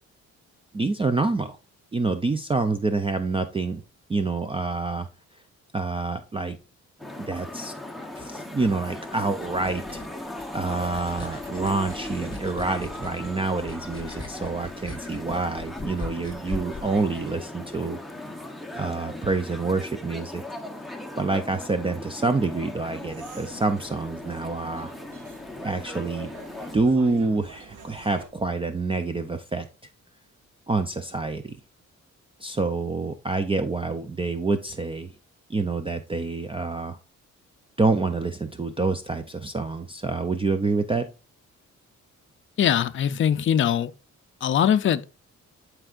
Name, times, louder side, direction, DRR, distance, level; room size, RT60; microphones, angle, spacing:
voice 1, 0.7-1.6 1.9-3.8 4.1-5.1 5.7-6.6 7.3-7.7 8.2-18.0 18.8-20.4 21.2-24.9 25.6-26.3 26.7-29.7 30.7-31.6 32.4-35.1 35.5-37.0 37.8-41.1, right 3 dB, 20° right, 0.4 m, -27 dB
sound 1, 7.0-26.8, left 1 dB, ahead, 0.9 m, -38 dB
sound 2, 9.1-17.9, left 3 dB, 15° left, 1.8 m, -41 dB
sound 3, 23.0-28.3, right 6 dB, 90° right, 1.3 m, -46 dB
voice 2, 42.6-43.9 44.4-45.1, left 9 dB, 40° left, 0.5 m, -21 dB
11.0 x 4.6 x 2.4 m
cardioid pair, 130°, 30 cm